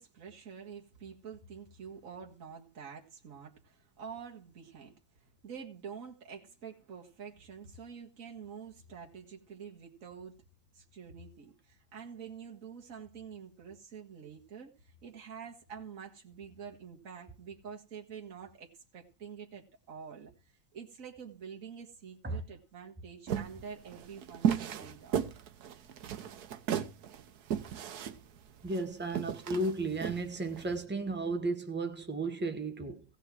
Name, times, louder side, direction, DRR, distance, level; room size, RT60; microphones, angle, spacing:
voice 1, 0.0-10.4 10.7-25.2, right 6 dB, 60° right, 2.2 m, -47 dB
sound 1, 23.3-30.7, right 9 dB, 80° right, 1.4 m, -34 dB
voice 2, 28.6-33.0, right 2 dB, 10° right, 1.1 m, -34 dB
16.0 x 5.6 x 7.5 m
omnidirectional pair, 1.6 m